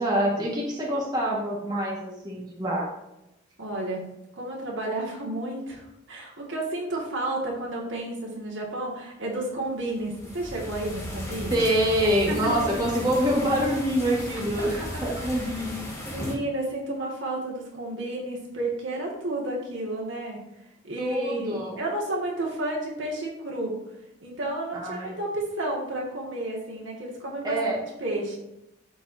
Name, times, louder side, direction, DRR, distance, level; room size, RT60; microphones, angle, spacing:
voice 1, 0.0-2.9 11.5-15.8 21.0-21.8 24.7-25.1 27.4-27.8, equal, 20° right, -4 dB, 1.6 m, -26 dB
voice 2, 3.6-4.0 4.4-11.6 12.3-12.7 14.6-15.4 16.1-20.4 20.8-23.8 24.2-27.6 28.0-28.4, right 1 dB, 75° right, -2 dB, 2.0 m, -31 dB
sound 1, 9.8-16.3, equal, 15° left, 2.0 m, -36 dB
13.5 x 4.5 x 2.7 m, 0.89 s
head